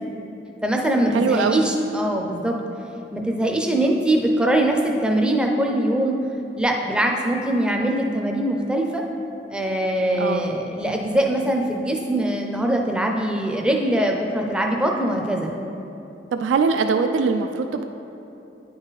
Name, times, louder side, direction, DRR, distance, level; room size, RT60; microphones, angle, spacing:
voice 1, 0.6-2.6 3.1-6.1 6.6-9.0 9.5-15.5, right 1 dB, 5° right, 1 dB, 0.4 m, -22 dB
voice 2, 1.1-1.6 10.2-10.5 16.3-17.8, right 5 dB, 85° right, 7 dB, 0.3 m, -21 dB
9.7 x 3.9 x 4.0 m, 2.9 s
head